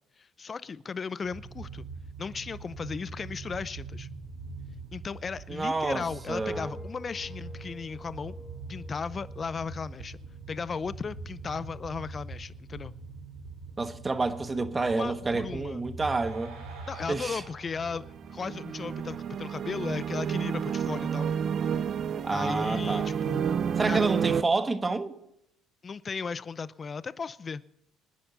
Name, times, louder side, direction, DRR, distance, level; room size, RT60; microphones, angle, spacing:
voice 1, 0.2-1.9 2.2-4.1 4.9-8.4 8.7-10.2 10.5-12.9 14.7-15.8 16.9-21.3 22.3-23.5 23.9-24.1 25.8-27.6, left 5 dB, 35° left, 0.6 m, -36 dB
sound 1, 1.2-19.6, right 3 dB, 85° right, 3.7 m, -43 dB
sound 2, 5.5-10.5 10.9-11.2, left 1 dB, 5° left, 2.2 m, -51 dB
voice 2, 5.5-6.7 13.8-16.6 17.1-17.4 22.2-23.1 23.8-25.2, right 3 dB, 25° right, 1.3 m, -29 dB
sound 3, 17.9-24.4, right 7 dB, 50° right, 0.7 m, -30 dB
24.0 x 10.0 x 4.0 m
supercardioid pair, 70°, 0 cm